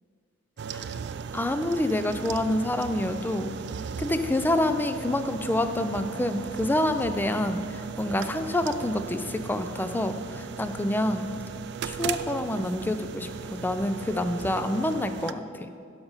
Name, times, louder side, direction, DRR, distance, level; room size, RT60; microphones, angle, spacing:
sound 1, 0.6-15.3, right 7 dB, 60° right, 0.3 m, -37 dB
voice 1, 1.3-3.6 4.0-7.6 8.0-11.3 11.8-15.7, left 1 dB, 10° left, 9 dB, 0.4 m, -27 dB
11.5 x 5.2 x 5.6 m, 2.3 s
head